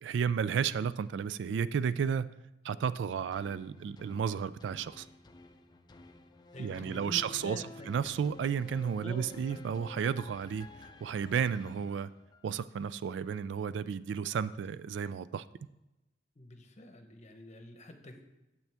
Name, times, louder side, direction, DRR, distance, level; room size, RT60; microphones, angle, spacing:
voice 1, 0.0-2.3 2.6-5.1 6.6-10.7 11.0-12.1 12.4-15.4, right 7 dB, 70° right, 16 dB, 0.3 m, -32 dB
sound 1, 3.3-12.7 13.2-13.3, left 3 dB, 25° left, 0.5 m, -52 dB
voice 2, 6.5-8.0 9.0-9.2 9.5-9.6 15.0-15.1 16.4-18.2, left 2 dB, 40° left, 6 dB, 0.9 m, -46 dB
9.2 x 7.6 x 3.4 m, 0.97 s
head